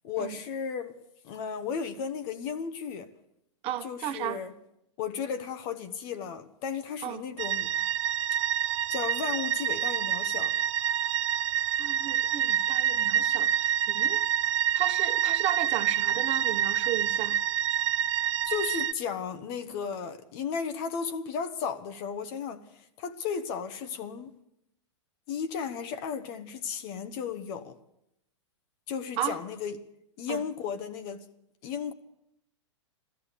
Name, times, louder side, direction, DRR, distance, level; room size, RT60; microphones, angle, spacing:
voice 1, 0.0-3.1 3.8-4.5 5.0-7.7 8.9-10.6 18.4-22.6 23.0-24.3 25.3-27.8 28.9-29.8 30.2-31.3 31.6-31.9, left 6 dB, 50° left, 1.3 m, -34 dB
voice 2, 3.6-4.4 7.0-7.2 11.8-14.2 14.7-17.4 29.2-29.4 30.3-30.4, right 12 dB, 35° right, 1.2 m, -34 dB
sound 1, 7.4-18.9, right 10 dB, 70° right, 0.5 m, -27 dB
15.5 x 13.5 x 6.8 m
hypercardioid pair, 125°, 16 cm